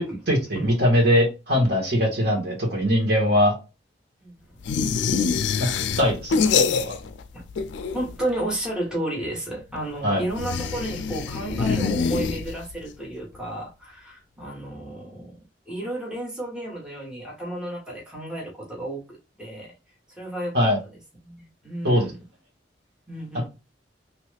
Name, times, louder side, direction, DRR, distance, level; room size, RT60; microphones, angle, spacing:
voice 1, 0.3-3.5 5.6-5.7 6.0-6.9 10.0-10.2 20.5-20.8 21.8-22.1, equal, 65° right, 1.4 m, -21 dB
voice 2, 4.2-5.4 7.3-7.5 7.9-15.4 15.7-19.7 20.2-22.2 23.1-23.4, right 1 dB, 5° right, 0.9 m, -33 dB
sound 1, 4.6-7.2 7.5-8.3 10.3-12.8, left 5 dB, 75° left, 0.3 m, -25 dB
3.0 x 2.3 x 3.3 m
head